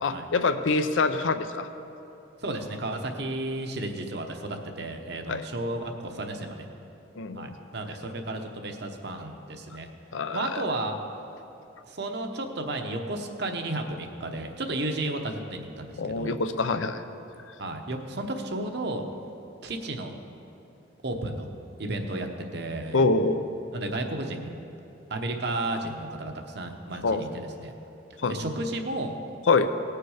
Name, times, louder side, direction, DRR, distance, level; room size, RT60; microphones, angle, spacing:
voice 1, 0.0-1.7 5.3-5.4 7.2-7.5 10.1-10.6 16.0-17.0 22.9-23.5 27.0-27.2 28.2-28.4 29.5-29.7, left 3 dB, 85° left, 10 dB, 0.6 m, -25 dB
voice 2, 2.4-6.7 7.3-9.9 10.3-11.0 11.9-16.4 17.6-19.0 19.6-20.1 21.0-21.5 21.8-23.0 23.7-24.5 25.1-27.7 28.3-29.2, right 2 dB, 60° right, 4 dB, 1.0 m, -33 dB
18.5 x 6.7 x 4.9 m, 3.0 s
head